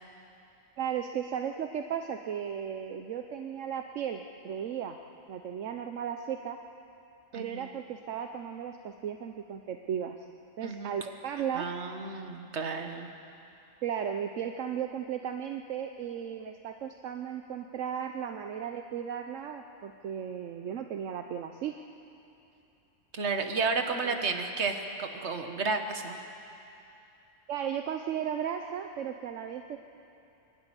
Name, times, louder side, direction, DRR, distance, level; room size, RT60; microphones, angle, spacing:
voice 1, 0.8-5.0 5.3-6.6 7.3-10.2 10.6-11.7 13.8-21.7 24.0-24.2 27.5-29.8, right 8 dB, 80° right, 6 dB, 1.1 m, -35 dB
voice 2, 7.3-7.7 10.6-11.0 11.5-13.1 23.1-26.2, right 4 dB, 60° right, 5 dB, 1.6 m, -32 dB
24.0 x 12.0 x 9.8 m, 2.8 s
omnidirectional pair, 1.3 m